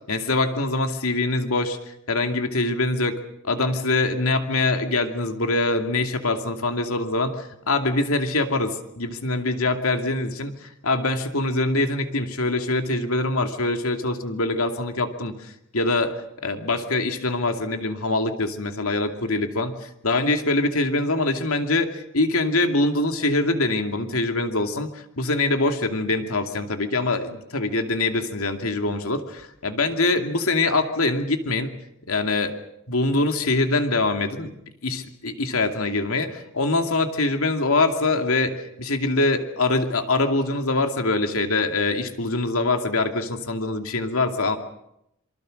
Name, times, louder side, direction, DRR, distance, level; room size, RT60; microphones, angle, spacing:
voice 1, 0.1-3.2 3.5-16.1 16.4-31.8 32.1-32.5 32.9-34.5 34.8-44.6, left 2 dB, 75° left, 6 dB, 2.5 m, -24 dB
26.5 x 24.5 x 6.5 m, 0.81 s
head